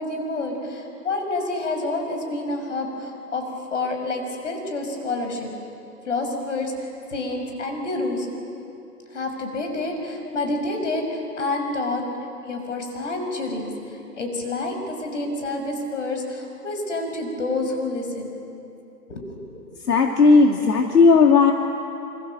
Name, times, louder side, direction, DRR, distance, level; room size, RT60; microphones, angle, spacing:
voice 1, 0.0-3.4 3.7-5.5 6.1-8.3 9.1-12.0 12.5-18.4 19.1-19.4, left 2 dB, 50° left, 4 dB, 6.3 m, -28 dB
voice 2, 19.9-21.5, left 4 dB, 70° left, 2 dB, 2.4 m, -15 dB
27.0 x 27.0 x 7.8 m, 2.8 s
hypercardioid pair, 175°, 47 cm